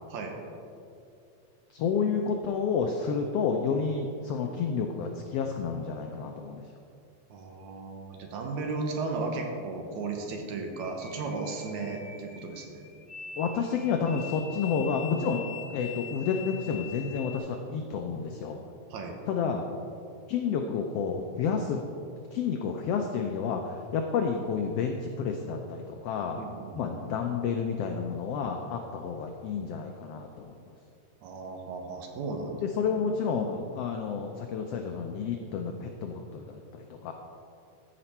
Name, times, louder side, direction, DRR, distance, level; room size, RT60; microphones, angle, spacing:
voice 1, 1.7-6.6 13.4-15.4 15.7-18.6 19.3-19.6 20.3-21.8 22.3-26.4 26.8-30.6 32.6-37.1, left 6 dB, 85° left, 4 dB, 1.3 m, -30 dB
voice 2, 7.3-12.8 18.9-19.2 26.4-27.2 31.2-32.7 32.9-33.1, right 3 dB, 75° right, 3 dB, 2.3 m, -35 dB
sound 1, 10.7-17.4, left 7 dB, 20° left, 1.7 m, -44 dB
13.5 x 5.1 x 4.4 m, 2.5 s
omnidirectional pair, 3.4 m